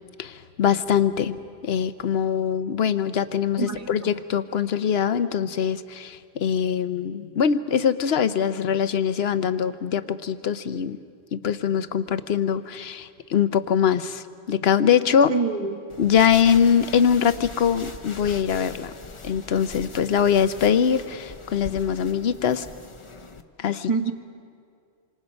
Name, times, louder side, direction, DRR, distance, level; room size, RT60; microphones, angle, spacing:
voice 1, 0.2-11.0 11.3-15.3 16.0-18.9 19.2-22.7 23.6-24.1, left 8 dB, 65° left, 12 dB, 1.0 m, -23 dB
voice 2, 3.6-4.1 15.3-15.8 23.9-24.1, right 4 dB, 30° right, 5 dB, 1.4 m, -26 dB
sound 1, 15.9-23.4, left 3 dB, 30° left, 0.8 m, -41 dB
27.5 x 26.0 x 5.3 m, 2.3 s
omnidirectional pair, 1.2 m